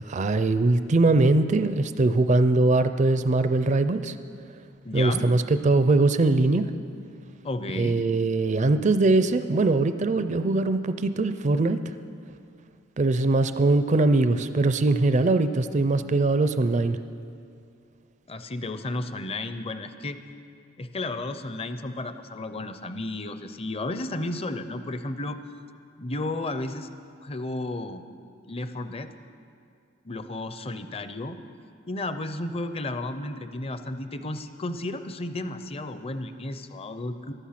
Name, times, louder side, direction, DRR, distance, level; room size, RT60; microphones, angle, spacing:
voice 1, 0.0-4.1 4.9-6.7 7.8-11.8 13.0-17.0, right 2 dB, 40° right, 11 dB, 0.4 m, -21 dB
voice 2, 4.8-5.3 7.4-8.0 18.3-20.2 20.8-25.4 26.0-26.9 27.2-28.0 28.5-29.1 30.0-31.4 31.9-37.3, left 2 dB, 30° left, 10 dB, 0.6 m, -33 dB
14.5 x 11.5 x 5.8 m, 2.4 s
head